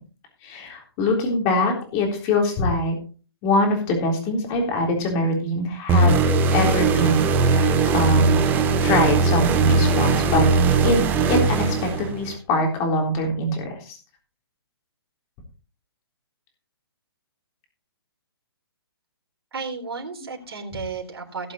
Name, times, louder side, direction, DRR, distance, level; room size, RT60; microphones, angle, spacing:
voice 1, 0.4-2.9 3.4-10.5 10.8-14.0, left 1 dB, 25° left, 1 dB, 3.7 m, -23 dB
sound 1, 5.9-12.3, right 4 dB, 15° right, 1.1 m, -19 dB
voice 2, 19.5-21.5, right 4 dB, 75° right, 2 dB, 3.9 m, -33 dB
18.0 x 7.4 x 3.0 m, 0.36 s
hypercardioid pair, 155°, 14 cm